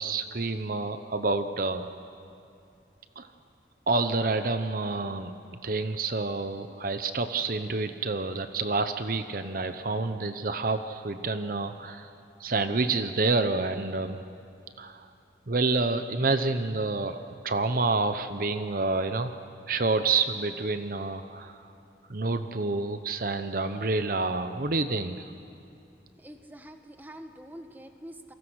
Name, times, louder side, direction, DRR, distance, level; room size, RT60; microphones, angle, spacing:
voice 1, 0.0-1.9 3.2-3.3 3.9-5.4 5.6-12.1 12.4-14.2 14.8-15.1 15.5-17.2 17.4-19.3 19.7-21.6 22.1-25.3, right 3 dB, 50° right, 9 dB, 0.9 m, -28 dB
voice 2, 26.2-28.3, equal, 10° right, 6 dB, 1.2 m, -45 dB
29.0 x 23.0 x 6.4 m, 2.6 s
head